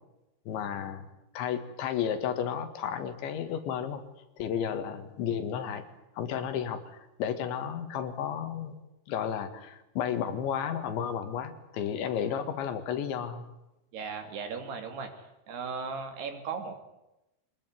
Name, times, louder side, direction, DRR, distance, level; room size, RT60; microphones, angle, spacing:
voice 1, 0.5-1.1 1.4-4.0 4.4-5.9 6.2-6.8 7.2-8.7 9.1-13.5, left 8 dB, 75° left, 9 dB, 4.1 m, -32 dB
voice 2, 13.9-15.1 15.5-16.8, right 5 dB, 60° right, 6 dB, 4.6 m, -37 dB
24.0 x 20.5 x 9.6 m, 0.91 s
omnidirectional pair, 5.4 m